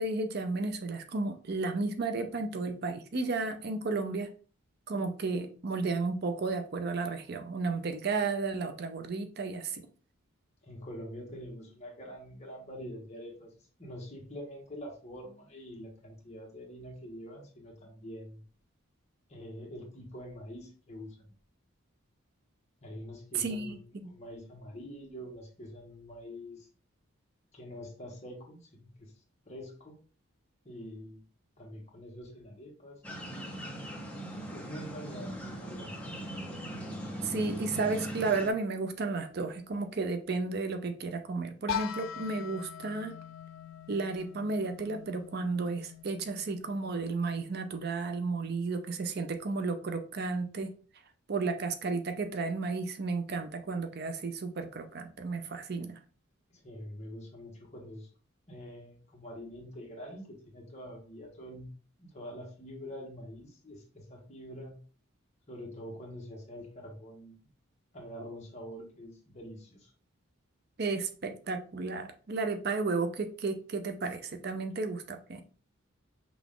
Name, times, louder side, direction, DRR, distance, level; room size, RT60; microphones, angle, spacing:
voice 1, 0.0-4.3 4.9-9.9 23.3-23.8 24.0-24.1 37.2-43.1 43.9-50.7 51.3-56.0 70.8-75.4, right 3 dB, 50° right, 7 dB, 0.5 m, -33 dB
voice 2, 10.6-13.5 13.8-18.4 19.3-21.2 22.8-23.8 24.0-26.7 27.5-29.1 29.5-30.0 30.6-31.2 31.6-33.0 34.5-35.9 56.6-58.1 58.5-61.7 62.0-64.8 65.5-67.4 67.9-69.9, equal, 30° left, 0 dB, 1.3 m, -45 dB
sound 1, 33.0-38.5, right 1 dB, 5° left, 0.8 m, -40 dB
sound 2, 41.7-47.5, left 9 dB, 70° left, 0.4 m, -42 dB
5.9 x 2.4 x 3.6 m, 0.39 s
head